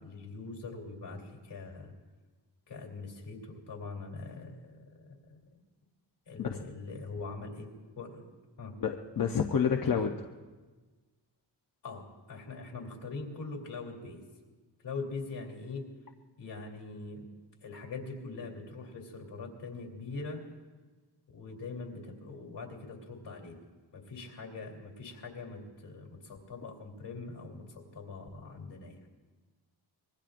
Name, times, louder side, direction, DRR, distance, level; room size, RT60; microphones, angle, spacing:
voice 1, 0.0-1.9 2.7-5.4 6.3-7.7 7.9-8.2 8.6-8.7 9.1-9.3 11.8-14.2 14.8-15.8 16.4-17.3 17.6-20.4 21.3-23.6 23.9-29.0, left 3 dB, 70° left, -1 dB, 3.2 m, -42 dB
voice 2, 8.8-10.3, left 7 dB, 55° left, 3 dB, 0.8 m, -29 dB
25.0 x 21.5 x 2.6 m, 1.3 s
wide cardioid pair, 145°, 41 cm